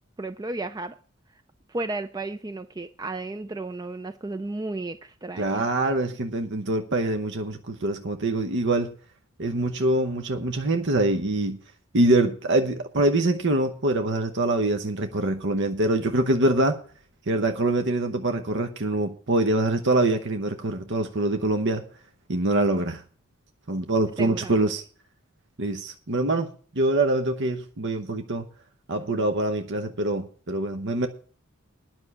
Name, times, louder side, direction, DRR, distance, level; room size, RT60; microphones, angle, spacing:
voice 1, 0.2-1.0 1.7-5.7 24.2-24.6, right 2 dB, 20° right, 0.4 m, -33 dB
voice 2, 5.4-8.9 9.4-11.6 11.9-16.8 17.3-21.8 22.3-23.0 23.7-24.8 25.6-26.5 26.8-28.5 28.9-31.1, right 2 dB, 60° right, 0.9 m, -24 dB
10.0 x 6.2 x 8.3 m
head